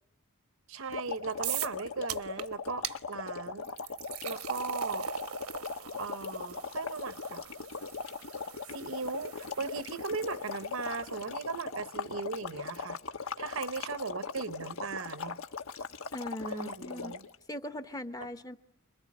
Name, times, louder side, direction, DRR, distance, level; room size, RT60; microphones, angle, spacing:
voice 1, 0.7-3.7 4.2-5.1 6.0-7.4 8.7-13.0 13.4-15.4 16.5-17.3, right 4 dB, 65° right, 0.9 m, -38 dB
sound 1, 0.9-17.4, left 5 dB, 70° left, 1.2 m, -39 dB
sound 2, 1.4-1.8 2.1-2.4 2.8-3.0 3.6-10.8, right 9 dB, 90° right, 1.2 m, -40 dB
voice 2, 16.1-17.2 17.5-18.6, left 1 dB, 15° left, 1.0 m, -40 dB
27.5 x 22.0 x 8.5 m
head